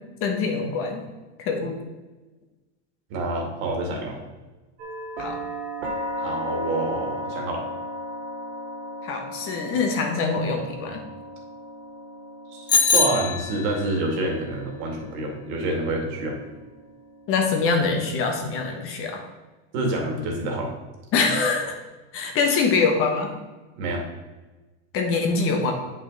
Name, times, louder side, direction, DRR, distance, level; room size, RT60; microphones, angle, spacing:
voice 1, 0.2-1.0 1.4-1.8 5.2-5.4 9.0-11.0 17.3-19.2 21.1-21.7 22.1-23.3 24.9-25.7, left 4 dB, 40° left, 3 dB, 1.3 m, -24 dB
voice 2, 3.1-4.2 6.2-7.6 12.5-16.4 19.7-20.7 23.8-24.0, right 2 dB, 60° right, 1 dB, 2.3 m, -27 dB
sound 1, 4.8-18.7, equal, 85° right, 2.8 m, -36 dB
Bicycle bell, 12.7-13.9, left 4 dB, 10° left, 0.6 m, -22 dB
8.9 x 5.6 x 4.1 m, 1.2 s
supercardioid pair, 150°, 35 cm